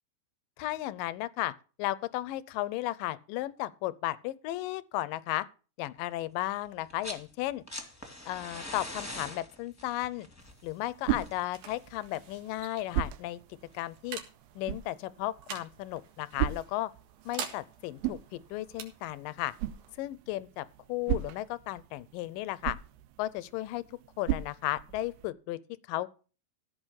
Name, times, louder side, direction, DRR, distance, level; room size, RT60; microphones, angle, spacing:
voice 1, 0.6-1.5 1.8-5.5 5.8-7.6 8.3-10.3 10.6-13.4 13.7-14.2 14.6-16.9 17.3-19.5 20.0-22.8 23.2-23.8 24.2-25.6 25.9-26.1, left 16 dB, 80° left, 2.1 m, -34 dB
sound 1, 6.8-7.3 7.5-12.4 13.6-13.7, left 1 dB, 5° left, 1.2 m, -43 dB
sound 2, 10.4-25.3, right 12 dB, 90° right, 2.7 m, -38 dB
sound 3, 10.9-22.1, right 7 dB, 70° right, 3.5 m, -48 dB
15.5 x 5.7 x 6.4 m
omnidirectional pair, 4.4 m